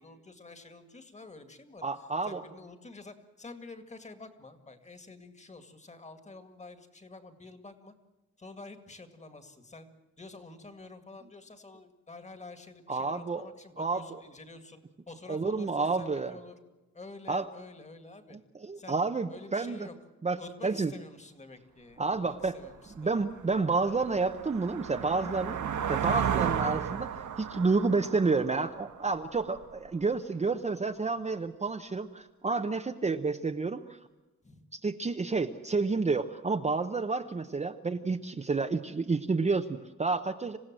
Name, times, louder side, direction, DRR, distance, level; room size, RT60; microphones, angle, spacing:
voice 1, 0.0-7.9 8.4-9.9 10.2-14.8 15.1-16.5 16.9-18.4 18.7-19.0 19.3-19.9 20.4-23.2 34.4-34.6, left 3 dB, 25° left, 8 dB, 2.1 m, -49 dB
voice 2, 1.8-2.4 12.9-13.5 13.8-14.2 15.3-16.3 17.3-17.5 18.6-19.8 20.2-20.4 20.6-20.9 22.0-22.6 23.0-25.6 25.9-34.0 34.7-40.6, right 4 dB, 25° right, 6 dB, 0.8 m, -30 dB
sound 1, 22.5-22.6 23.1-29.6, right 8 dB, 85° right, 1.4 m, -34 dB
27.5 x 16.5 x 7.6 m, 1.1 s
wide cardioid pair, 160°, 29 cm